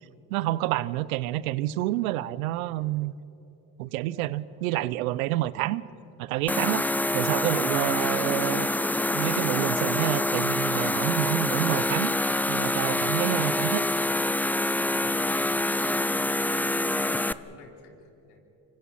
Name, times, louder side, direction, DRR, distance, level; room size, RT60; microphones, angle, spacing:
voice 1, 0.3-3.1 3.8-5.8 6.2-6.8 7.1-8.7 9.1-12.1 12.5-13.8, right 16 dB, 90° right, 18 dB, 0.7 m, -28 dB
sound 1, 6.5-17.3, left 1 dB, 5° left, 0.5 m, -26 dB
voice 2, 14.9-15.4 15.9-18.4, left 4 dB, 70° left, 2 dB, 3.9 m, -50 dB
26.0 x 24.0 x 5.7 m, 2.9 s
supercardioid pair, 70°, 42 cm